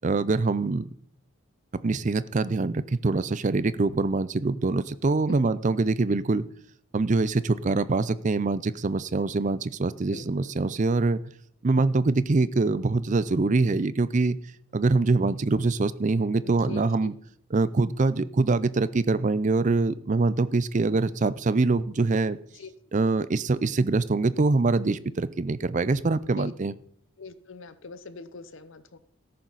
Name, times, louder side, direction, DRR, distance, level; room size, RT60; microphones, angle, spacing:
voice 1, 0.0-0.9 1.8-6.4 6.9-11.2 11.6-14.4 14.7-17.1 17.5-22.4 22.9-26.7, right 3 dB, 35° right, 16 dB, 0.4 m, -24 dB
voice 2, 10.1-10.5 16.4-17.1 22.6-22.7 26.2-26.5 27.2-29.0, left 3 dB, 60° left, 14 dB, 0.8 m, -43 dB
14.0 x 11.0 x 4.0 m, 0.65 s
head